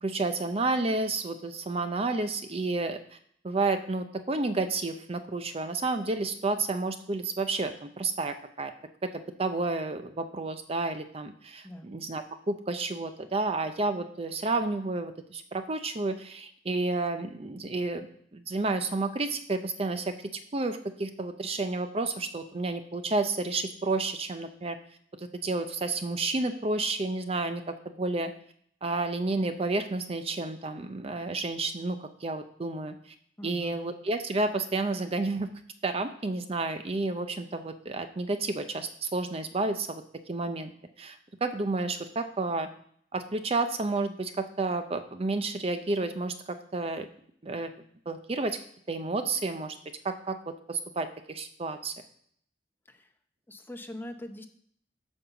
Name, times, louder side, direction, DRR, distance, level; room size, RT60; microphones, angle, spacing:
voice 1, 0.0-3.2 3.4-8.7 9.1-18.1 18.3-24.8 25.3-28.3 28.8-33.0 33.4-35.5 35.8-40.0 40.3-40.7 41.0-42.7 43.1-46.3 46.7-47.1 47.4-47.7 48.1-48.6 48.9-49.8 50.0-51.9, right 3 dB, 35° right, 9 dB, 0.6 m, -31 dB
voice 2, 11.6-12.0 33.4-33.8 52.8-53.1 53.5-54.5, left 1 dB, 10° left, 6 dB, 0.8 m, -42 dB
8.5 x 5.4 x 6.9 m, 0.64 s
head